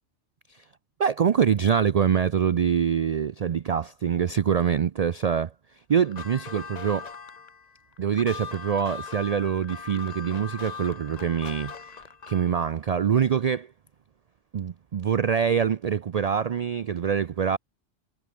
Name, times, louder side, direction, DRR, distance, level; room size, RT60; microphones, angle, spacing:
voice 1, 1.0-5.5 5.9-7.1 8.0-11.7 12.3-13.7 14.5-17.6, right 7 dB, 70° right, 0.3 m, -24 dB
sound 1, 6.0-12.6, left 5 dB, 35° left, 1.0 m, -40 dB
omnidirectional pair, 1.3 m